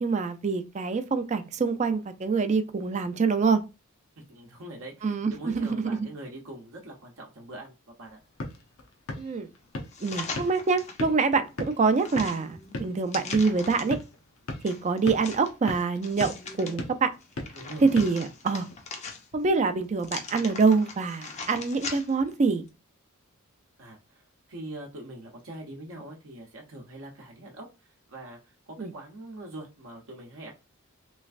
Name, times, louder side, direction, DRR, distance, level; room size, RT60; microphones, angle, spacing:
voice 1, 0.0-3.6 5.0-6.1 9.2-9.5 10.0-14.0 14.6-16.3 16.6-17.1 17.8-18.7 19.3-22.6 28.8-28.9, right 4 dB, 35° right, 0.4 m, -25 dB
voice 2, 4.2-8.2 17.5-17.9 23.8-30.5, right 1 dB, 65° right, 0.7 m, -43 dB
sound 1, 8.0-18.9, left 2 dB, 75° left, 0.7 m, -40 dB
sound 2, 9.9-11.0 11.5-14.0 14.7-16.7 17.2-19.5 20.0-22.3 22.7-22.8, left 4 dB, 30° left, 0.6 m, -40 dB
3.3 x 3.1 x 2.4 m
head